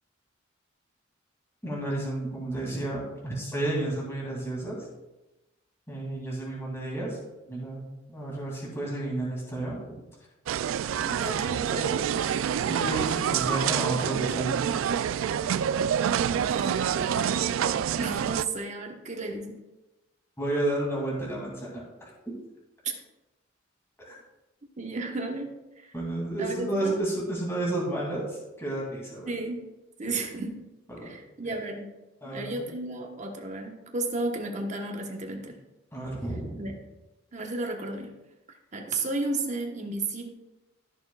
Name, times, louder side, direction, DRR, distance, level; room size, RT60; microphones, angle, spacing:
voice 1, 1.6-4.8 5.9-7.2 7.5-10.0 12.7-14.7 17.1-17.2 20.4-22.1 25.9-29.3 30.1-30.2 30.9-31.1 31.4-31.6 32.2-32.6 35.9-36.7, right 1 dB, 15° left, -4 dB, 2.6 m, -31 dB
sound 1, 10.5-18.4, right 8 dB, 90° right, 0.3 m, -27 dB
voice 2, 11.0-12.1 16.4-17.6 17.9-19.6 22.8-22.9 24.8-25.9 26.4-27.0 29.3-29.6 30.0-30.6 31.0-31.9 32.2-35.6 36.5-36.7 37.3-38.1 38.7-40.3, right 2 dB, 35° right, 2 dB, 1.2 m, -33 dB
13.5 x 6.8 x 2.4 m, 1.0 s
head